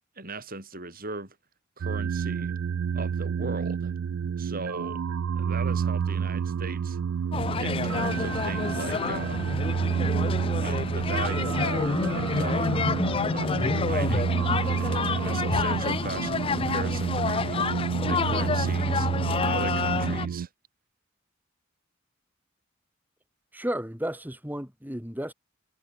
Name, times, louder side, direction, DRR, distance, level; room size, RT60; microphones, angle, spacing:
voice 1, 0.2-1.4 1.8-2.5 2.9-3.9 4.4-5.0 5.4-7.0 7.6-9.4 10.6-12.8 13.2-19.1 19.4-20.5, right 3 dB, 45° right, 7.3 m, -38 dB
sound 1, 1.8-20.5, right 7 dB, 75° right, 0.3 m, -29 dB
sound 2, 7.3-20.3, left 4 dB, 25° left, 0.4 m, -28 dB
voice 2, 23.5-25.3, right 1 dB, 10° right, 4.5 m, -33 dB
head